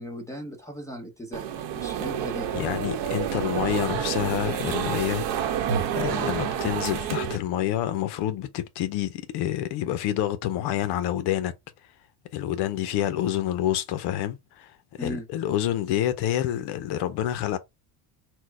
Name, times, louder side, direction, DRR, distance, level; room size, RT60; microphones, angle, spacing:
voice 1, 0.0-1.5 1.7-2.5 15.0-15.3, equal, 5° left, 0.8 m, -37 dB
sound 1, 1.3-7.4, right 8 dB, 75° right, 1.0 m, -28 dB
voice 2, 2.5-5.7 5.9-11.5 12.3-17.6, left 12 dB, 70° left, 0.6 m, -28 dB
4.4 x 2.1 x 4.5 m
cardioid pair, 140°, 43 cm